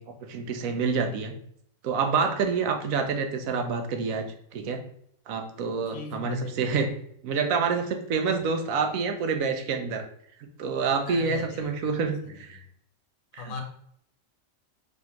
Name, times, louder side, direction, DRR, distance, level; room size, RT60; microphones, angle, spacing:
voice 1, 0.0-1.3 1.8-4.3 4.5-4.8 5.3-6.9 7.2-10.0 10.6-12.6 13.3-13.5, right 5 dB, 80° right, 6 dB, 1.1 m, -27 dB
voice 2, 5.9-6.8 11.0-12.0 12.2-12.7 13.3-13.6, left 3 dB, 80° left, 3 dB, 1.2 m, -38 dB
4.1 x 3.6 x 2.9 m, 0.68 s
omnidirectional pair, 1.4 m